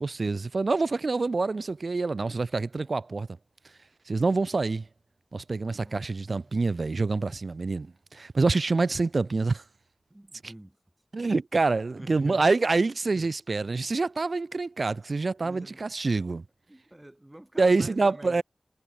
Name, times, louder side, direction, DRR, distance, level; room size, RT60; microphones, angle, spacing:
voice 1, 0.0-3.3 4.1-4.9 5.3-9.6 10.4-10.5 11.1-16.4 17.6-18.4, right 3 dB, 70° right, 0.4 m, -26 dB
voice 2, 5.7-6.1 6.4-6.5 10.1-10.8 12.0-12.5 13.0-13.3 15.4-15.8 16.7-18.4, right 1 dB, 20° right, 1.8 m, -47 dB
wide cardioid pair, 55°, 0 cm